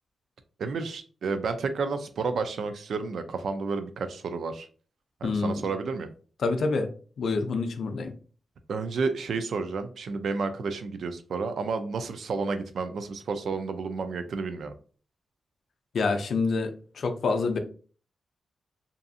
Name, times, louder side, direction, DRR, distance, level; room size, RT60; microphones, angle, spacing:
voice 1, 0.6-4.7 5.2-6.1 8.7-14.7, right 4 dB, 75° right, 9 dB, 0.4 m, -31 dB
voice 2, 5.2-5.7 6.4-6.9 7.2-8.1 15.9-17.6, left 4 dB, 70° left, 6 dB, 0.4 m, -27 dB
2.6 x 2.4 x 2.6 m, 0.40 s
wide cardioid pair, 100°, 0 cm